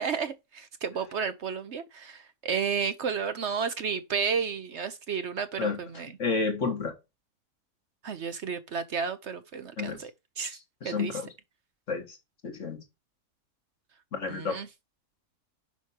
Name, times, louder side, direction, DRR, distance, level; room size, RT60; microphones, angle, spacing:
voice 1, 0.0-5.7 6.0-6.1 8.0-10.1 10.4-10.6 10.8-11.1 14.3-14.7, right 6 dB, 55° right, 1.0 m, -32 dB
voice 2, 6.2-6.9 9.8-10.0 10.8-11.3 11.9-12.2 12.4-12.8 14.1-14.6, left 4 dB, 55° left, 2.1 m, -30 dB
7.2 x 4.9 x 5.9 m
omnidirectional pair, 1.5 m